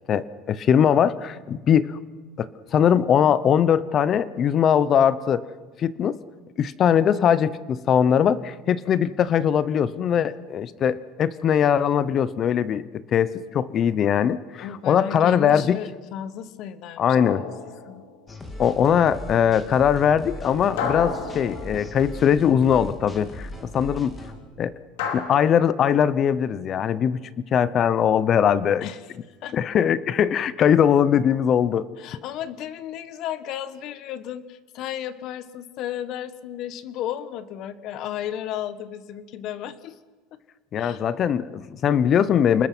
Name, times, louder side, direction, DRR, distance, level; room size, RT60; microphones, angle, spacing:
voice 1, 0.1-2.0 2.4-5.4 5.8-6.2 6.6-12.8 13.1-15.8 17.0-17.4 18.6-24.1 24.6-24.7 25.1-27.2 27.5-28.9 29.5-31.9 40.7-42.7, left 8 dB, 30° left, 17 dB, 0.8 m, -21 dB
voice 2, 14.6-17.0 17.3-17.5 17.9-18.0 28.8-29.0 29.4-29.6 32.0-40.0 40.3-40.4 40.8-41.0, left 10 dB, 45° left, 14 dB, 1.2 m, -34 dB
sound 1, 17.2-18.4 20.8-22.4 25.0-25.2, left 6 dB, 90° left, 3.8 m, -32 dB
sound 2, 18.3-24.4, left 1 dB, 15° left, 2.4 m, -38 dB
29.0 x 20.0 x 6.1 m, 1.3 s
cardioid pair, 160°, 0 cm